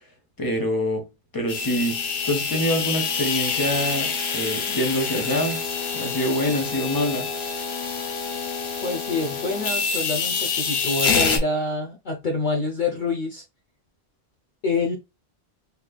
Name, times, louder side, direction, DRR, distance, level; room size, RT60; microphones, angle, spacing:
voice 1, 0.4-1.1 1.3-5.6 5.9-7.3, left 1 dB, 20° left, 1.1 m, -25 dB
sound 1, 1.5-11.4, left 5 dB, 70° left, 1.1 m, -26 dB
voice 2, 8.8-13.4 14.6-15.0, left 3 dB, 50° left, 0.8 m, -26 dB
3.6 x 3.1 x 2.2 m
omnidirectional pair, 1.1 m